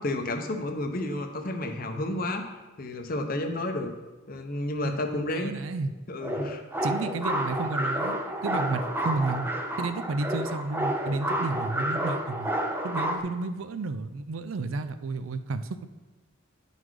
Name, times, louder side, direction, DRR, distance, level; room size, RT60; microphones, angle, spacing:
voice 1, 0.0-2.4 2.8-3.9 4.3-5.6 6.1-6.6, left 1 dB, 45° left, 5 dB, 0.7 m, -31 dB
voice 2, 5.3-5.9 6.8-9.5 9.8-12.5 12.8-15.9, right 3 dB, 75° right, 10 dB, 0.5 m, -31 dB
sound 1, 6.2-13.2, right 1 dB, 10° right, 0.5 m, -30 dB
10.5 x 4.1 x 4.7 m, 1.2 s
head